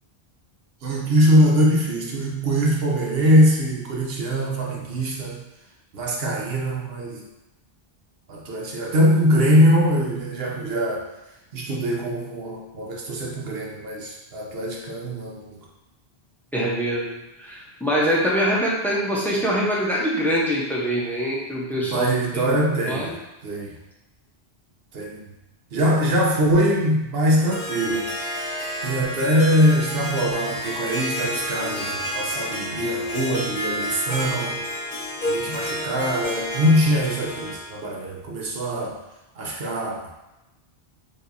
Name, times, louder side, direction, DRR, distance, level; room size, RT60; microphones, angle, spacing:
voice 1, 0.8-5.4 5.9-7.2 8.3-11.0 11.5-15.5 21.9-23.1 23.4-23.7 24.9-25.2 25.7-28.1 28.8-34.7 35.2-39.0 39.4-40.0, equal, 70° right, -1 dB, 1.0 m, -22 dB
voice 2, 16.5-17.1 17.4-22.6 22.9-23.1, equal, ahead, -5 dB, 0.8 m, -24 dB
Harp, 27.2-37.7, equal, 45° left, 1.4 m, -30 dB
4.7 x 3.3 x 2.7 m, 0.99 s
omnidirectional pair, 1.1 m